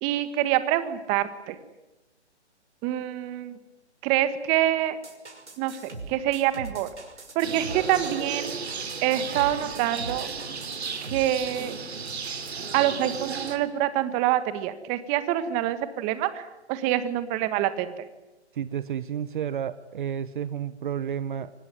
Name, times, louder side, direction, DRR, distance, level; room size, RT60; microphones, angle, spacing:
voice 1, 0.0-1.6 2.8-3.6 4.0-5.0 5.6-6.9 7.3-8.6 9.0-10.3 11.1-11.7 12.7-18.1, right 13 dB, 20° right, 12 dB, 1.5 m, -26 dB
sound 1, 5.0-11.7, right 3 dB, 85° right, 6.0 m, -42 dB
sound 2, 7.4-13.6, right 5 dB, 65° right, 3.1 m, -34 dB
voice 2, 18.5-21.5, right 9 dB, 45° right, 15 dB, 1.0 m, -31 dB
24.5 x 20.0 x 9.8 m, 1.0 s
figure-of-eight pair, 140°, 34 cm